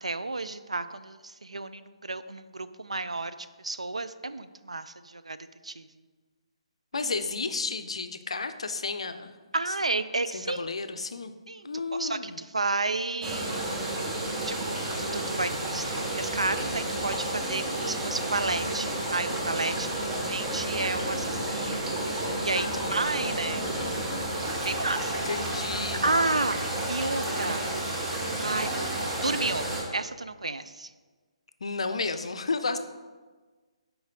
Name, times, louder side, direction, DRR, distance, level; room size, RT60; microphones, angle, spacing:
voice 1, 0.0-5.4 5.6-5.9 9.5-10.7 11.5-11.7 12.0-13.7 14.4-21.8 22.0-23.8 24.6-25.3 26.0-26.6 26.9-27.6 28.4-30.9, right 3 dB, 75° right, 12 dB, 0.3 m, -32 dB
voice 2, 6.9-9.4 9.7-9.8 10.3-11.3 11.6-12.4 22.5-23.1 25.1-26.1 31.6-32.8, left 4 dB, 65° left, 9 dB, 0.5 m, -32 dB
sound 1, 13.2-29.8, right 1 dB, 15° right, 0.9 m, -31 dB
6.3 x 4.5 x 3.6 m, 1.4 s
figure-of-eight pair, 140°, 3 cm